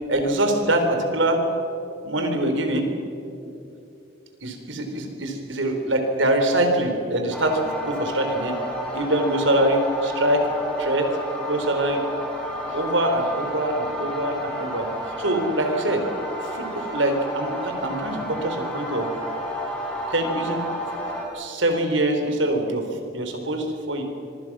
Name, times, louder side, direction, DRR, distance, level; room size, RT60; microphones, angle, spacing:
voice 1, 0.1-1.4 2.0-2.9 3.4-3.5 4.4-8.6 8.9-10.5 10.8-11.1 11.5-12.0 12.7-14.9 15.2-16.0 16.4-19.1 20.1-20.6 21.3-22.8 23.1-24.0, right 1 dB, 90° right, 5 dB, 4.0 m, -24 dB
sound 1, 7.3-21.3, equal, 5° left, 5.1 m, -31 dB
25.5 x 24.5 x 6.2 m, 2.7 s
head